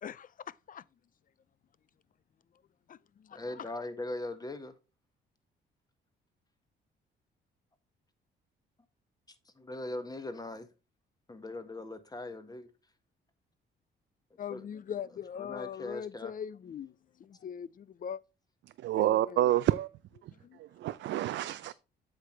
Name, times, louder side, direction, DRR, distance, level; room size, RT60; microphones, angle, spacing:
voice 1, 3.3-4.7 9.6-10.7 11.3-12.7 14.5-14.7 15.3-16.3, left 2 dB, 20° left, 1.5 m, -40 dB
voice 2, 14.4-16.9 17.4-18.2 19.0-19.5 20.4-20.6, left 8 dB, 45° left, 0.5 m, -40 dB
voice 3, 18.8-19.9 20.6-21.7, right 13 dB, 70° right, 0.4 m, -28 dB
8.1 x 6.0 x 3.3 m
cardioid pair, 90°, 20 cm